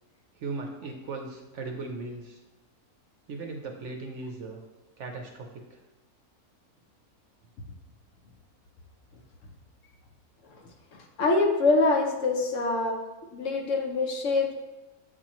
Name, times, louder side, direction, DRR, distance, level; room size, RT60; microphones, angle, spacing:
voice 1, 0.4-2.4 3.3-4.6 5.0-5.8, right 3 dB, 60° right, 3 dB, 0.8 m, -38 dB
voice 2, 11.2-13.0 13.3-14.5, left 3 dB, 60° left, 2 dB, 1.0 m, -24 dB
8.0 x 4.3 x 2.9 m, 1.1 s
omnidirectional pair, 1.6 m